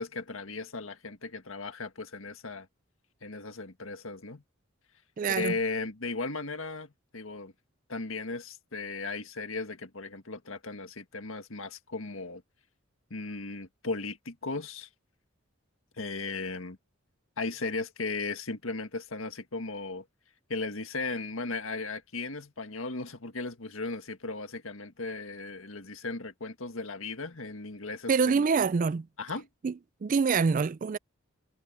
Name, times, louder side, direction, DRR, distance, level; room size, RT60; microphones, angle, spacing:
voice 1, 0.0-2.7 3.2-4.4 5.3-7.5 7.9-12.4 13.1-14.9 16.0-16.8 17.4-20.0 20.5-28.4 29.2-29.5, left 3 dB, 80° left, 1.7 m, -36 dB
voice 2, 5.2-5.6 28.1-29.1 29.6-29.7 30.0-31.0, right 5 dB, 40° right, 0.3 m, -25 dB
head